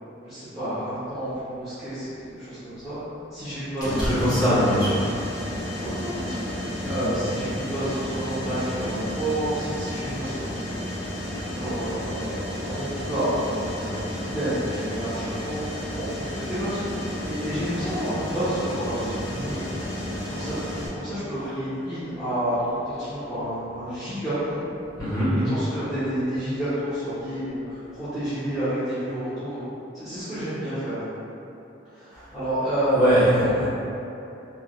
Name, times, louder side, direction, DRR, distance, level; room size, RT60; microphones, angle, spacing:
voice 1, 0.2-3.0 3.3-5.0 5.8-6.4 6.8-10.8 11.4-19.7 20.3-20.6 20.9-24.6 25.4-29.6 29.9-31.0 31.9-33.5, right 1 dB, ahead, -17 dB, 0.8 m, -30 dB
Mechanisms, 3.8-20.9, left 1 dB, 80° left, 0.7 m, -32 dB
voice 2, 3.9-5.1 5.6-5.7 6.8-7.1 25.0-25.3 32.1-32.3 32.9-33.7, equal, 20° left, -13 dB, 1.2 m, -22 dB
3.1 x 2.4 x 2.5 m, 2.8 s
head